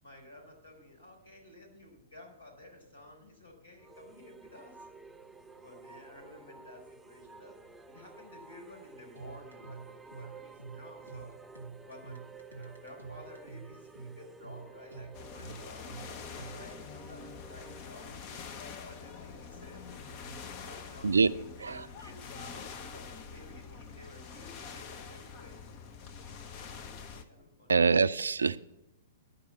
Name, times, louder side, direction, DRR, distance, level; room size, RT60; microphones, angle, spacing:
voice 1, 0.0-4.9 5.5-7.6 7.9-11.3 11.9-12.2 12.5-18.4 18.8-20.1 20.6-25.6 26.5-27.7, left 1 dB, 70° left, 4.6 m, -53 dB
sound 1, 3.8-18.0, right 4 dB, 10° right, 0.4 m, -52 dB
sound 2, 9.2-16.7, right 4 dB, 90° left, 1.7 m, -47 dB
sound 3, 15.1-27.2, left 6 dB, 35° left, 1.0 m, -45 dB
voice 2, 27.7-28.6, right 5 dB, 70° right, 0.4 m, -24 dB
12.0 x 5.4 x 8.4 m
figure-of-eight pair, 105°, 0 cm